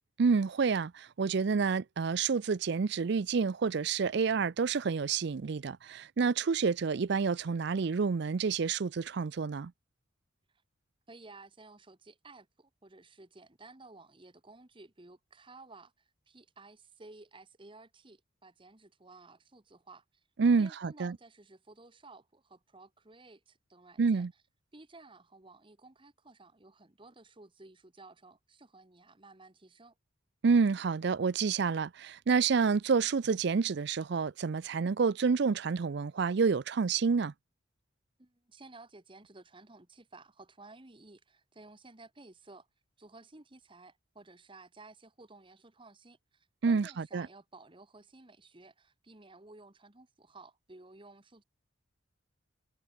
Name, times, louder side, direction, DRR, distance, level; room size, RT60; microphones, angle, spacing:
voice 1, 0.2-9.7 20.4-21.2 24.0-24.3 30.4-37.3 46.6-47.3, right 5 dB, 55° right, 0.4 m, -28 dB
voice 2, 11.1-20.2 20.5-24.3 24.7-29.9 38.2-42.7 43.0-51.4, right 3 dB, 25° right, 1.3 m, -55 dB
head